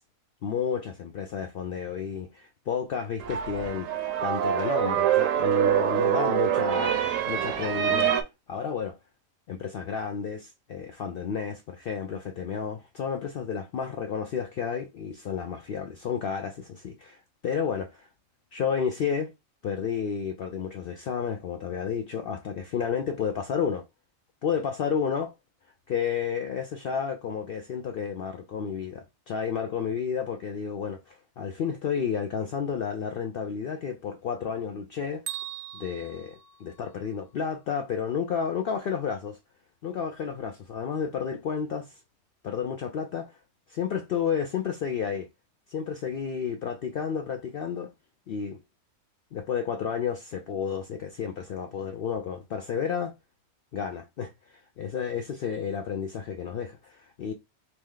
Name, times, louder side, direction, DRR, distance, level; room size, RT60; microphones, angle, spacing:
voice 1, 0.4-3.9 4.2-8.2 8.5-9.0 9.5-18.1 18.5-19.3 19.6-23.8 24.4-25.3 25.9-35.2 35.7-39.4 39.8-41.9 42.4-43.3 43.7-45.3 45.7-47.9 48.3-48.6 49.3-53.1 53.7-57.3, left 7 dB, 65° left, 0.6 m, -31 dB
sound 1, 3.2-8.2, right 10 dB, 75° right, 1.0 m, -25 dB
Bell, 35.3-37.3, right 10 dB, 60° right, 0.7 m, -40 dB
3.1 x 2.8 x 3.7 m
omnidirectional pair, 1.4 m